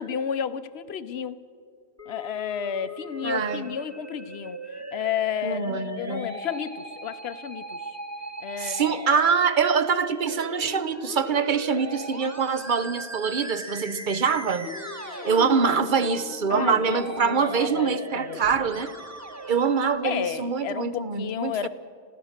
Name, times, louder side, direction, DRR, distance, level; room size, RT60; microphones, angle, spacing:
voice 1, 0.0-1.4 2.1-4.6 4.9-8.0 8.4-9.0 14.6-15.6 16.5-18.4 20.0-21.7, left 8 dB, 70° left, 13 dB, 1.0 m, -32 dB
Musical instrument, 2.0-20.0, right 1 dB, 15° right, 1.2 m, -39 dB
voice 2, 3.2-3.7 5.4-6.3 8.6-14.7 15.2-18.9 19.5-21.7, right 6 dB, 50° right, 13 dB, 0.9 m, -24 dB
27.0 x 16.0 x 6.6 m, 2.2 s
omnidirectional pair, 1.1 m